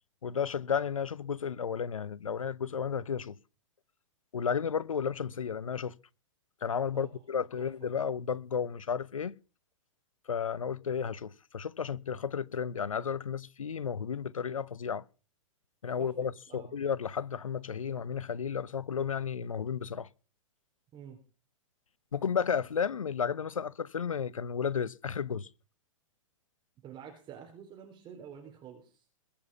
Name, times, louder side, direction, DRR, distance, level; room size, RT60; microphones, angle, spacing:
voice 1, 0.2-3.4 4.3-6.0 6.6-9.4 10.3-15.0 15.8-20.1 22.1-25.5, left 7 dB, 85° left, 0.8 m, -33 dB
voice 2, 7.4-7.9 16.0-16.1 16.5-16.7 20.9-21.2 26.8-29.0, right 8 dB, 30° right, 3.9 m, -48 dB
22.0 x 7.3 x 5.5 m
hypercardioid pair, 120°, 17 cm